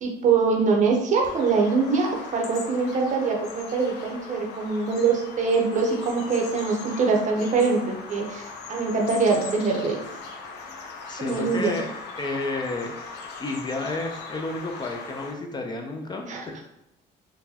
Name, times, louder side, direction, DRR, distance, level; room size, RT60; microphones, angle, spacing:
voice 1, 0.0-10.0 11.2-11.7 16.3-16.5, right 4 dB, 45° right, 1 dB, 0.7 m, -23 dB
Bird vocalization bird call bird song, 1.2-15.3, left 4 dB, 75° left, 0.6 m, -39 dB
voice 2, 11.1-11.8 12.2-12.9 13.4-16.6, left 2 dB, 25° left, 3 dB, 0.4 m, -31 dB
3.9 x 2.1 x 2.8 m, 0.81 s
cardioid pair, 110°, 17 cm